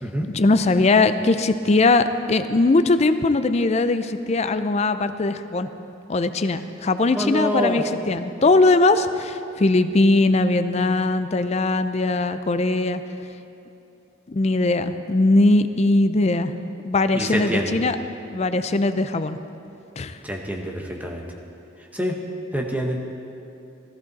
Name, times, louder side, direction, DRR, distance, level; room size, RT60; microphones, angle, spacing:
voice 1, 0.3-5.7 6.1-13.0 14.3-16.5 16.8-18.0 18.3-19.4 20.0-20.2, left 2 dB, 35° left, 11 dB, 0.4 m, -20 dB
voice 2, 7.2-7.8 17.1-17.7 20.2-21.2 21.9-22.1 22.5-23.0, equal, 10° right, 0 dB, 1.1 m, -26 dB
15.0 x 14.5 x 4.1 m, 2.8 s
head